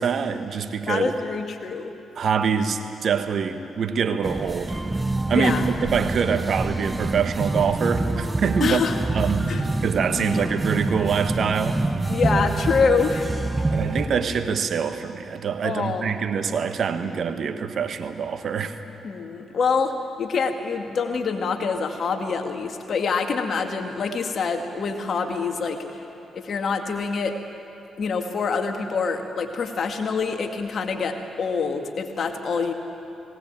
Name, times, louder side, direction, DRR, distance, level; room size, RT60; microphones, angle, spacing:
voice 1, 0.0-1.1 2.1-4.8 5.3-8.8 9.1-9.5 9.8-11.8 13.7-18.8, right 6 dB, 60° right, 9 dB, 1.3 m, -25 dB
voice 2, 0.9-1.9 5.3-5.7 8.6-9.0 9.5-9.6 10.2-10.5 12.1-13.7 15.6-16.1 19.0-26.0 26.3-27.4 28.0-32.7, left 5 dB, 55° left, 5 dB, 2.1 m, -26 dB
sound 1, 4.2-14.1, right 2 dB, 25° right, 1.4 m, -26 dB
19.5 x 18.5 x 8.9 m, 2.8 s
hypercardioid pair, 50°, 0 cm